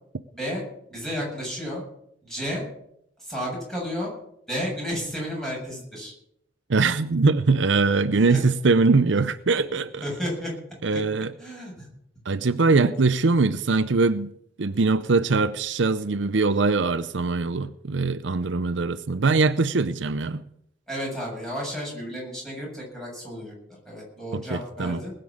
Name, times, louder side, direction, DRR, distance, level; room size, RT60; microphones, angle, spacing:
voice 1, 0.9-1.8 2.2-2.6 3.2-4.1 4.5-6.1 8.2-8.4 10.0-10.5 10.9-11.0 11.4-11.9 20.9-23.5 23.9-25.1, equal, 5° left, 7.3 m, -32 dB
voice 2, 6.7-10.0 10.8-11.3 12.3-14.3 14.6-20.4 24.3-25.0, right 3 dB, 70° right, 0.6 m, -22 dB
20.0 x 6.8 x 8.6 m
head